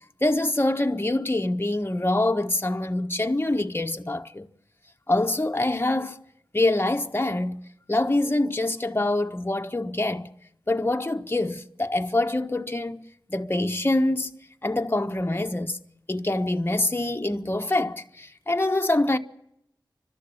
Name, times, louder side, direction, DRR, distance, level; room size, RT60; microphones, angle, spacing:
voice 1, 0.2-4.5 5.1-6.1 6.5-7.6 7.9-10.3 10.7-13.0 13.3-14.3 14.6-15.8 16.1-19.2, left 2 dB, 25° left, 1.4 m, -25 dB
29.5 x 13.0 x 9.5 m
wide cardioid pair, 50°, 8 cm